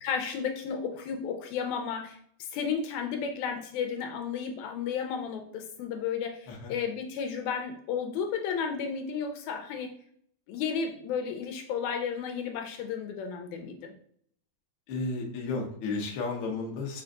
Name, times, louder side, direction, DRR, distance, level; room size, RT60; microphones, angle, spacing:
voice 1, 0.0-2.2 2.5-9.9 10.5-13.8, left 6 dB, 80° left, 4 dB, 1.9 m, -33 dB
voice 2, 14.9-17.0, left 3 dB, 65° left, -1 dB, 1.3 m, -33 dB
5.0 x 2.3 x 3.7 m, 0.62 s
omnidirectional pair, 3.3 m